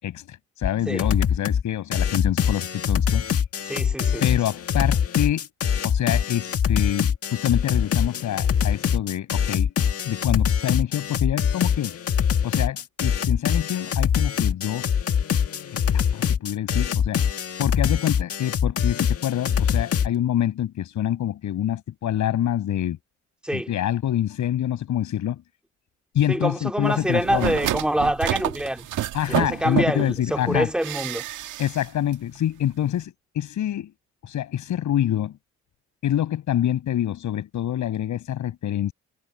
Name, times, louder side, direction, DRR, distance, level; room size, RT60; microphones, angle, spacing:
voice 1, 0.0-3.4 4.2-5.5 5.8-9.7 10.0-12.0 12.4-15.0 15.9-23.0 23.5-25.4 26.1-27.6 29.1-30.7 31.6-33.9 34.2-35.4 36.0-38.9, left 11 dB, 75° left, 5.8 m, -26 dB
sound 1, 0.6-0.7 1.0-1.6 1.9-20.1, left 8 dB, 50° left, 1.9 m, -23 dB
voice 2, 3.7-4.2 23.4-23.7 26.3-28.9 29.3-31.2, right 1 dB, 5° right, 3.0 m, -26 dB
sound 2, 27.1-30.2 30.8-31.9 32.1-32.2, right 13 dB, 80° right, 2.0 m, -28 dB
cardioid pair, 90°, 30 cm